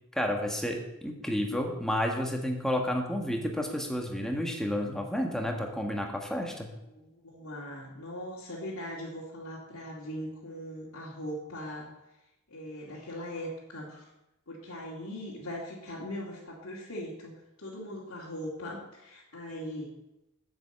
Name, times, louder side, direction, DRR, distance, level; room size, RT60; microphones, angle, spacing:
voice 1, 0.1-0.8 1.0-6.7, equal, ahead, 1 dB, 1.4 m, -31 dB
voice 2, 6.9-11.9 12.5-14.1 14.5-17.3 17.6-19.9, equal, 80° left, -7 dB, 2.2 m, -40 dB
7.9 x 7.1 x 7.8 m, 0.92 s
head